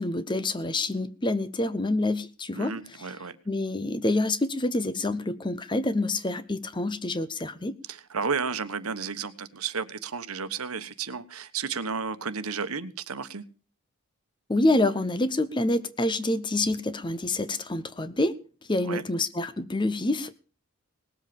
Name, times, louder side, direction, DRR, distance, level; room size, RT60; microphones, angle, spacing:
voice 1, 0.0-2.7 3.5-7.8 14.5-18.3 18.7-20.3, left 2 dB, 20° left, 0.7 m, -27 dB
voice 2, 2.5-3.4 7.9-13.4 18.8-19.0, right 5 dB, 75° right, 1.2 m, -32 dB
19.0 x 7.8 x 6.9 m
head